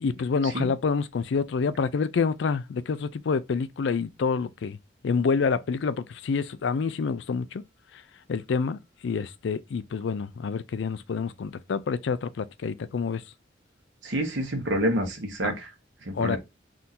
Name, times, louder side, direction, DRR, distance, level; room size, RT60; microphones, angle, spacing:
voice 1, 0.0-4.8 5.0-7.6 8.3-13.2 15.4-15.6 16.1-16.4, left 5 dB, 70° left, 0.4 m, -27 dB
voice 2, 14.0-15.7 16.1-16.4, equal, 80° right, 1.3 m, -28 dB
3.7 x 2.6 x 4.2 m
head